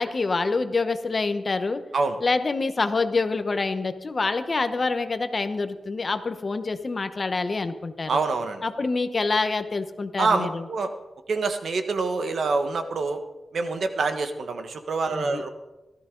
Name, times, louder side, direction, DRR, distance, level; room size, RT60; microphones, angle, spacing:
voice 1, 0.0-1.8 2.2-8.2 8.6-10.6 15.1-15.4, left 3 dB, 35° left, 9 dB, 0.9 m, -26 dB
voice 2, 8.1-8.6 10.2-10.9 11.3-13.2 13.5-15.5, right 4 dB, 70° right, 7 dB, 1.2 m, -26 dB
17.0 x 13.5 x 3.9 m, 1.1 s
wide cardioid pair, 135°, 0 cm